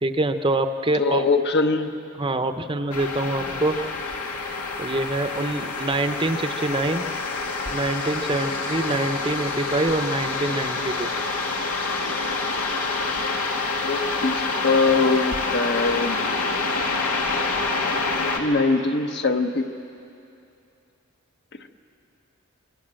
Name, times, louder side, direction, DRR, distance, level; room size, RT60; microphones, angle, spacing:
voice 1, 0.0-1.3 2.2-3.8 4.8-7.1 7.7-11.1, right 2 dB, 25° right, 8 dB, 0.8 m, -25 dB
voice 2, 1.0-1.9 13.8-16.2 18.3-19.7, left 3 dB, 50° left, 6 dB, 1.1 m, -22 dB
sound 1, 2.9-18.4, left 3 dB, 90° left, 2.4 m, -27 dB
25.5 x 24.0 x 7.7 m, 2.7 s
head